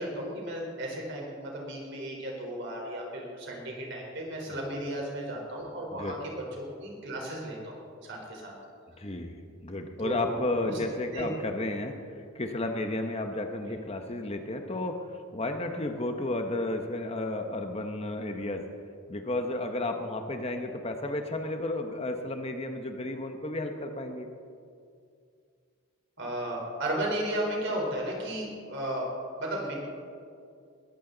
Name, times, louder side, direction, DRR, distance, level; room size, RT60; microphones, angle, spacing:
voice 1, 0.0-8.5 10.0-10.8 11.1-11.3 13.6-13.9 26.2-29.1 29.4-29.7, right 1 dB, 55° right, -1 dB, 4.0 m, -34 dB
voice 2, 9.0-9.4 9.6-15.0 15.3-18.7 19.1-24.3, left 2 dB, 30° left, 5 dB, 0.9 m, -32 dB
21.0 x 14.0 x 3.9 m, 2.3 s
head